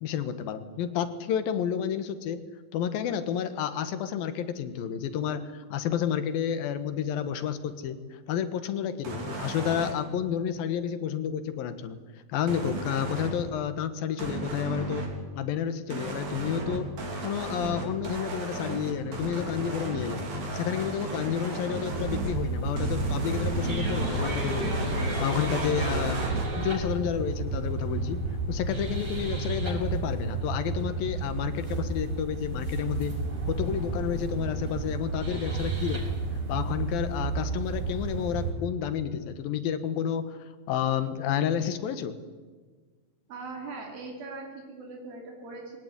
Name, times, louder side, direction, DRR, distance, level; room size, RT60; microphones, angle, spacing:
voice 1, 0.0-2.4 2.7-12.0 12.3-15.1 15.4-16.9 17.2-20.2 20.5-26.2 26.6-28.2 28.5-33.1 33.5-36.2 36.5-40.4 40.7-42.2, left 9 dB, 80° left, 11 dB, 3.1 m, -30 dB
sound 1, 9.0-9.9 12.5-13.4 14.2-15.1 15.9-22.4 22.8-26.5, right 2 dB, 50° right, 4.8 m, -34 dB
sound 2, 21.9-38.5, right 2 dB, 35° right, 6.7 m, -31 dB
voice 2, 43.3-45.8, right 3 dB, 80° right, 1 dB, 4.6 m, -40 dB
22.5 x 18.0 x 9.7 m, 1.4 s
omnidirectional pair, 4.1 m